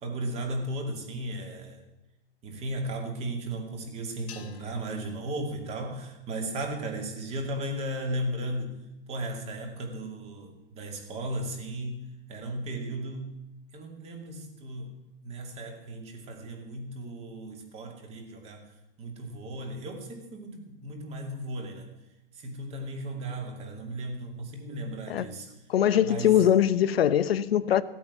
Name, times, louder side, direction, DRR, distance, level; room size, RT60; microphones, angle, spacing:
voice 1, 0.0-1.8 2.4-8.8 9.1-13.4 13.7-15.0 15.2-18.7 19.0-21.9 22.3-25.5 26.1-26.3, right 1 dB, 20° right, 3 dB, 2.4 m, -35 dB
sound 1, 4.3-6.7, left 10 dB, 35° left, 2.0 m, -53 dB
voice 2, 25.7-27.8, left 10 dB, 90° left, 15 dB, 1.0 m, -22 dB
16.5 x 8.7 x 8.3 m, 0.93 s
hypercardioid pair, 155°, 29 cm